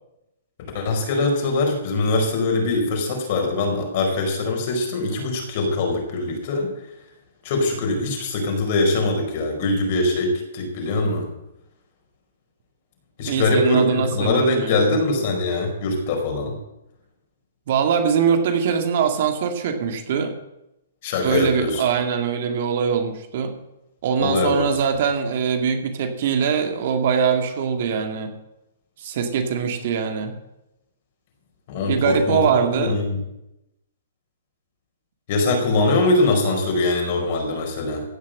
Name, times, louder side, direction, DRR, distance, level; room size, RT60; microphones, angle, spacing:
voice 1, 0.7-6.7 7.4-11.3 13.2-16.6 21.0-21.8 24.2-24.7 31.7-32.5 32.7-33.2 35.3-38.0, left 2 dB, 40° left, 2 dB, 4.6 m, -22 dB
voice 2, 13.3-14.8 17.7-20.3 21.2-23.5 24.0-28.3 29.0-30.3 31.8-33.0, right 6 dB, 50° right, 5 dB, 2.2 m, -22 dB
15.5 x 7.6 x 7.8 m, 0.88 s
hypercardioid pair, 160°, 0 cm